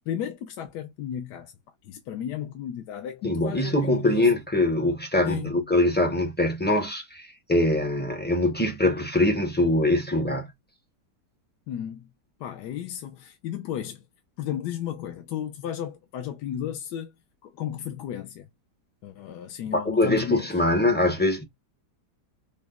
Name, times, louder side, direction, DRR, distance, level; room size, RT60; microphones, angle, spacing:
voice 1, 0.1-1.5 1.8-4.3 5.2-5.7 11.7-12.1 12.4-14.1 14.4-17.1 17.4-18.5 19.0-20.5, left 10 dB, 75° left, 1.2 m, -34 dB
voice 2, 3.2-10.5 19.7-21.4, left 1 dB, 15° left, 0.3 m, -23 dB
4.9 x 2.1 x 2.3 m
omnidirectional pair, 1.8 m